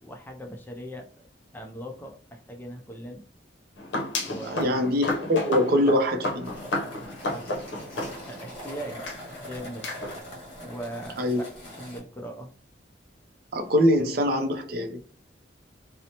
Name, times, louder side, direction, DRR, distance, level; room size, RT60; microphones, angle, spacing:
voice 1, 0.0-1.0 1.5-3.2 4.2-4.8 7.2-7.5 8.3-10.0 10.6-12.5, right 1 dB, 10° left, 0.4 m, -40 dB
sound 1, 3.8-8.6 9.1-9.2 9.8-10.2, left 2 dB, 70° left, 0.6 m, -32 dB
voice 2, 4.4-6.5 11.2-11.4 13.5-15.0, left 1 dB, 55° right, 0.5 m, -23 dB
sound 2, 6.4-12.0, equal, 35° left, 1.3 m, -42 dB
2.8 x 2.0 x 2.7 m
head